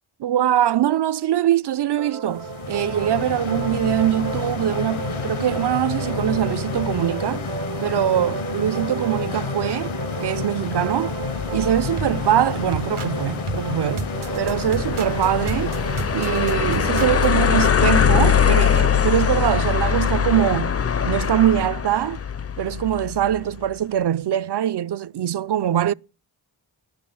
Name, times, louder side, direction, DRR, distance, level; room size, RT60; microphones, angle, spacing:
voice 1, 0.2-7.5 7.8-11.2 11.5-14.1 14.4-15.8 16.1-20.8 21.0-22.2 22.6-25.9, right 11 dB, 55° right, 0.5 m, -23 dB
sound 1, 2.0-17.3, right 6 dB, 75° right, 1.0 m, -33 dB
sound 2, 2.3-16.8, left 7 dB, 70° left, 0.8 m, -30 dB
sound 3, 11.2-23.4, left 7 dB, 30° left, 0.5 m, -22 dB
12.0 x 6.6 x 6.9 m
cardioid pair, 50°, 50 cm